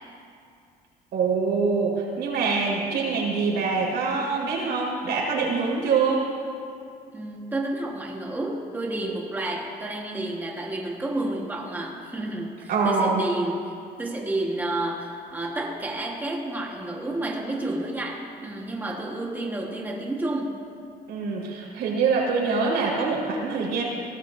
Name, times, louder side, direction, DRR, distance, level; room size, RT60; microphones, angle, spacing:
voice 1, 1.1-6.3 12.7-13.2 21.1-23.8, right 4 dB, 80° right, -3 dB, 4.3 m, -24 dB
voice 2, 7.1-13.6 14.0-20.6, right 2 dB, 10° right, -1 dB, 1.4 m, -30 dB
23.0 x 18.0 x 2.7 m, 2.4 s
cardioid pair, 155°, 17 cm